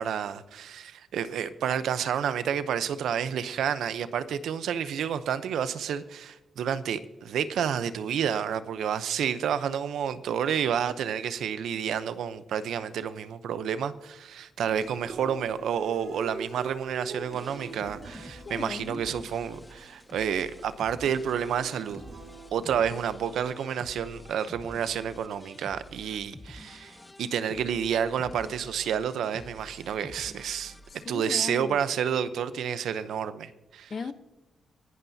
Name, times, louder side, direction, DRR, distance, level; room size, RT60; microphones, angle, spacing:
voice 1, 0.0-22.0 22.5-30.7 31.1-33.9, right 8 dB, 90° right, 0.7 m, -30 dB
Human voice / Acoustic guitar, 14.6-22.6, right 3 dB, 70° right, 3.4 m, -43 dB
sound 1, 17.3-31.1, left 1 dB, 15° left, 0.9 m, -49 dB
voice 2, 18.5-19.0 31.1-31.8 33.9-34.1, left 5 dB, 45° left, 0.8 m, -36 dB
25.0 x 11.5 x 2.8 m
cardioid pair, 100°, 0 cm